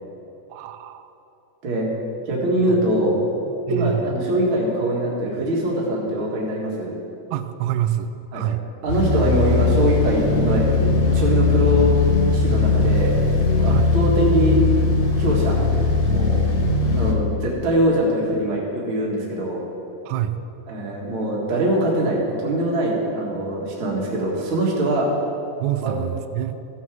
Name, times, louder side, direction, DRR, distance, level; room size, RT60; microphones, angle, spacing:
voice 1, 0.5-1.1 3.7-4.1 7.3-8.6 13.7-13.9 20.1-20.3 25.6-26.6, right 12 dB, 85° right, 11 dB, 2.6 m, -26 dB
voice 2, 2.2-3.2 3.7-6.9 8.3-8.4 8.8-12.0 12.3-13.1 13.6-14.6 15.2-15.6 16.1-16.5 16.9-19.6 20.7-25.1 25.8-25.9, right 1 dB, 45° right, -3 dB, 1.7 m, -22 dB
sound 1, 8.9-17.1, left 3 dB, 70° left, 2.9 m, -19 dB
14.5 x 8.4 x 3.7 m, 2.8 s
omnidirectional pair, 4.7 m